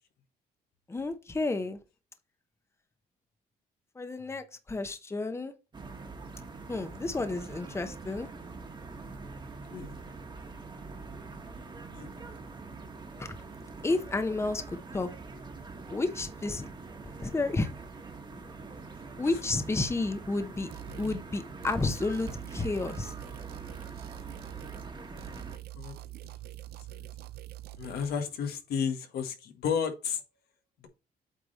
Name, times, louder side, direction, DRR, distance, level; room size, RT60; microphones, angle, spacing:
voice 1, 0.9-1.8 4.0-5.5 6.7-8.3 13.2-13.4 13.8-15.1 15.9-16.7 17.2-17.7 19.2-20.7 21.0-23.1, left 3 dB, 15° left, 0.9 m, -31 dB
sound 1, 5.7-25.6, right 3 dB, 30° right, 1.4 m, -44 dB
voice 2, 11.9-12.4 20.9-21.2 25.7-25.9 26.9-27.1 27.8-30.2, left 7 dB, 85° left, 1.5 m, -33 dB
sound 2, 20.7-21.2 21.6-24.9 25.2-28.1, right 15 dB, 85° right, 0.5 m, -44 dB
8.3 x 3.3 x 4.1 m
cardioid pair, 105°, 16 cm